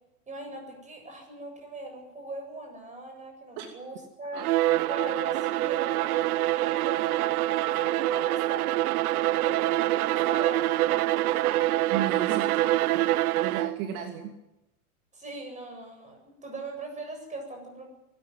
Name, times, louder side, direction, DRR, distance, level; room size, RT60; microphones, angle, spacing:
voice 1, 0.3-6.2 6.7-8.7 9.2-11.6 15.1-17.9, right 2 dB, 15° right, 4 dB, 7.9 m, -40 dB
Bowed string instrument, 4.3-13.8, right 16 dB, 80° right, 0.7 m, -25 dB
voice 2, 11.9-13.0 13.4-14.3, right 9 dB, 55° right, 4 dB, 2.9 m, -34 dB
24.0 x 14.5 x 9.4 m, 0.95 s
supercardioid pair, 130°, 44 cm